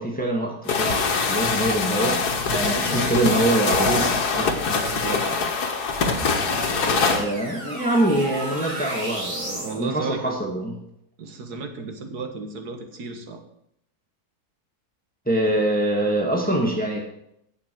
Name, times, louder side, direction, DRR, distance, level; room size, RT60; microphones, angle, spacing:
voice 1, 0.0-4.1 6.7-10.8 15.3-17.0, right 1 dB, 5° left, 0 dB, 1.8 m, -24 dB
sound 1, 0.7-7.2, left 4 dB, 85° left, 1.9 m, -23 dB
voice 2, 2.5-3.8 4.1-5.2 9.6-10.4 11.2-13.4, right 4 dB, 85° right, 5 dB, 2.0 m, -33 dB
sound 2, 5.9-9.8, right 1 dB, 30° right, 2.4 m, -34 dB
17.5 x 6.5 x 4.7 m, 0.76 s
omnidirectional pair, 1.6 m